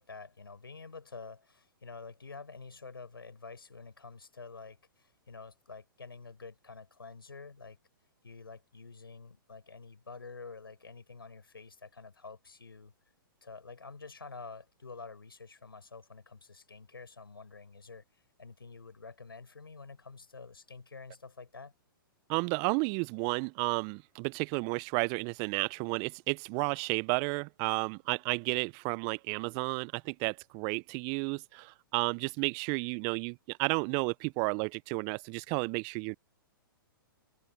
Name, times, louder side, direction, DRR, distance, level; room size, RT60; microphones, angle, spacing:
voice 1, 0.0-7.8 8.2-12.9 13.4-21.7, left 4 dB, 90° left, 5.3 m, -48 dB
voice 2, 22.3-36.2, right 34 dB, 35° right, 0.5 m, -32 dB
open air
hypercardioid pair, 120°, 12 cm